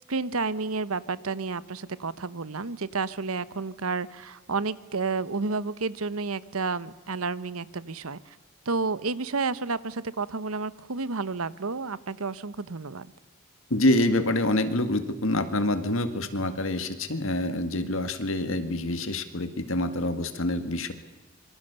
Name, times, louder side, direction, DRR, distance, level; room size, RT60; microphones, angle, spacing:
voice 1, 0.1-8.4 8.7-13.1, right 4 dB, 85° right, 16 dB, 1.0 m, -31 dB
voice 2, 13.7-20.9, left 1 dB, 65° left, 9 dB, 2.0 m, -26 dB
26.0 x 24.0 x 7.0 m, 1.2 s
head